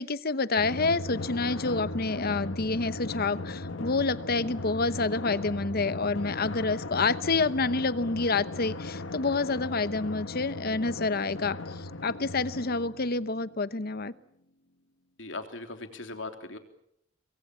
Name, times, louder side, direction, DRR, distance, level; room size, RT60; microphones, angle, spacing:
voice 1, 0.0-14.1, left 3 dB, 55° left, 15 dB, 1.0 m, -28 dB
Drum, 0.6-13.6, left 2 dB, 90° left, 1.4 m, -37 dB
voice 2, 15.2-16.6, left 2 dB, 75° left, 6 dB, 3.4 m, -39 dB
26.0 x 21.5 x 8.4 m, 0.75 s
head